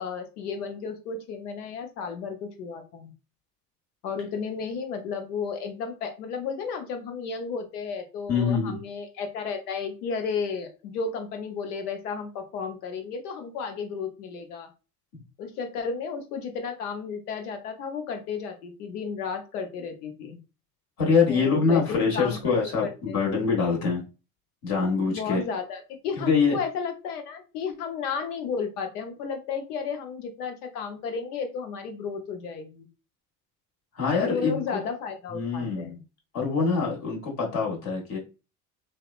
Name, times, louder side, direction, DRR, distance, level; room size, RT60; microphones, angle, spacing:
voice 1, 0.0-3.1 4.0-14.7 15.4-20.4 21.3-22.4 22.8-23.3 25.1-32.9 34.3-36.0, left 5 dB, 85° left, 6 dB, 0.6 m, -33 dB
voice 2, 8.3-8.8 21.0-24.0 24.6-25.4 26.2-26.6 33.9-34.8 35.3-35.9 36.3-38.2, left 5 dB, 55° left, -1 dB, 1.3 m, -24 dB
2.7 x 2.1 x 2.3 m, 0.30 s
hypercardioid pair, 65°, 44 cm